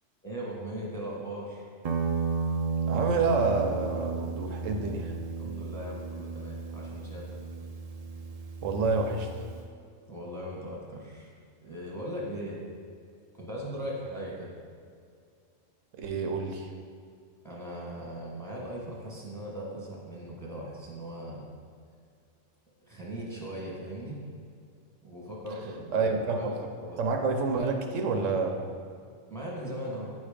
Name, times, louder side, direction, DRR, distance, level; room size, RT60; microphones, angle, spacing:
voice 1, 0.2-1.7 5.4-7.3 10.1-11.3 11.6-12.6 13.3-14.6 17.4-21.4 22.8-24.2 25.0-26.5 26.8-27.0 29.3-30.1, equal, ahead, -4 dB, 1.4 m, -39 dB
Guitar, 1.8-9.7, right 5 dB, 70° right, 0.3 m, -34 dB
voice 2, 2.9-5.1 8.6-9.3 16.0-16.7 25.9-26.5 27.0-28.6, right 4 dB, 85° right, 4 dB, 1.1 m, -28 dB
9.2 x 3.2 x 5.0 m, 2.2 s
omnidirectional pair, 1.3 m